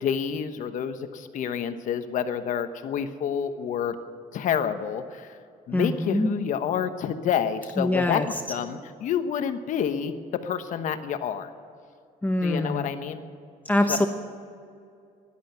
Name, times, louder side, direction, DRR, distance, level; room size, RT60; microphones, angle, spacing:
voice 1, 0.0-3.9 4.3-5.4 5.7-10.1 10.4-11.5 12.4-13.2 13.9-14.1, left 8 dB, 60° left, 9 dB, 1.2 m, -28 dB
voice 2, 5.7-6.3 7.8-8.3 12.2-12.9 13.7-14.1, left 1 dB, 10° left, 5 dB, 1.0 m, -24 dB
12.5 x 11.5 x 9.1 m, 2.4 s
cardioid pair, 100°, 15 cm